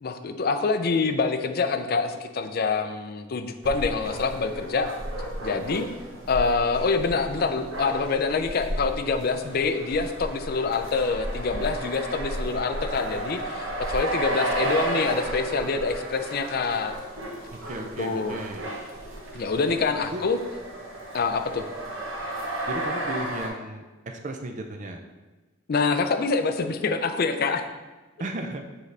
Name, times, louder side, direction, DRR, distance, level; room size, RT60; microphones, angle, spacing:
voice 1, 0.0-4.9 5.4-5.9 6.3-17.0 18.0-18.4 19.3-20.4 21.1-21.7 25.7-27.6, left 4 dB, 50° left, 8 dB, 0.4 m, -26 dB
sound 1, 3.6-23.5, right 1 dB, 85° right, 1.0 m, -33 dB
voice 2, 17.5-18.6 20.1-20.2 22.7-25.0 28.2-28.6, right 1 dB, 40° right, 4 dB, 0.4 m, -35 dB
7.3 x 3.9 x 3.3 m, 1.2 s
head